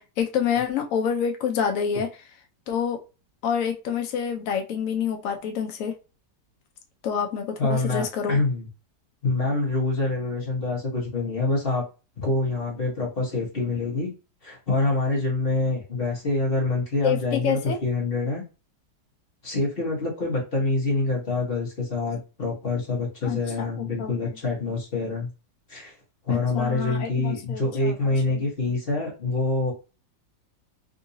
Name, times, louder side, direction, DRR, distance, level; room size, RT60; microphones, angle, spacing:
voice 1, 0.0-2.1 2.7-3.0 3.4-5.9 7.0-8.4 17.0-17.8 23.2-24.1 26.3-28.4, left 7 dB, 60° left, 4 dB, 0.9 m, -27 dB
voice 2, 7.6-8.7 9.2-11.8 12.2-14.1 14.4-18.4 19.4-25.3 25.7-25.9 26.2-29.7, left 3 dB, 35° left, -2 dB, 1.1 m, -26 dB
3.7 x 2.7 x 2.6 m, 0.31 s
omnidirectional pair, 1.9 m